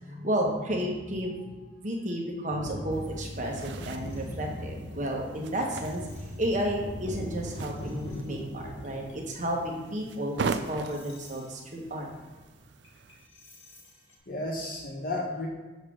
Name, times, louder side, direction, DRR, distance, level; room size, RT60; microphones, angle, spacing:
voice 1, 0.0-1.4 1.8-6.0 6.4-12.1, equal, 40° right, 0 dB, 1.1 m, -32 dB
voice 2, 1.2-1.7 14.3-15.5, left 2 dB, 45° left, -1 dB, 1.3 m, -34 dB
sound 1, 2.5-14.1, equal, 75° left, 1.8 m, -40 dB
sound 2, 2.9-13.3, right 4 dB, 60° right, 0.4 m, -40 dB
6.4 x 3.7 x 6.2 m, 1.2 s
head